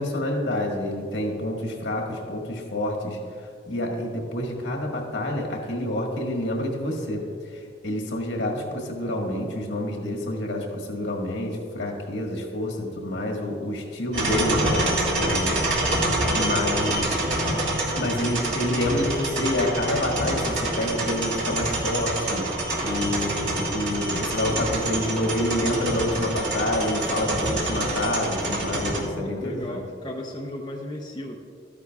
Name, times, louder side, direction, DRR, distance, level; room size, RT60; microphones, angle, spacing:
voice 1, 0.0-7.3 7.5-15.7 16.3-17.2 18.0-29.8, left 1 dB, 70° left, 0 dB, 1.6 m, -28 dB
sound 1, 14.1-29.0, right 1 dB, 90° right, 1.9 m, -26 dB
voice 2, 15.8-16.5 27.1-27.6 29.1-31.3, left 1 dB, 25° left, -1 dB, 0.6 m, -36 dB
13.5 x 9.8 x 2.4 m, 2.3 s
head